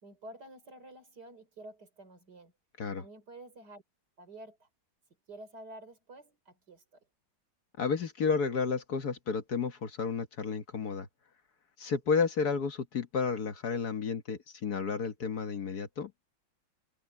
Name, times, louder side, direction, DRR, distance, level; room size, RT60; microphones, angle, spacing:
voice 1, 0.0-2.5 3.0-3.8 4.2-4.7 5.3-7.0, right 1 dB, 60° right, 4.6 m, -50 dB
voice 2, 7.8-11.1 11.8-16.1, left 5 dB, 60° left, 1.8 m, -31 dB
omnidirectional pair, 2.0 m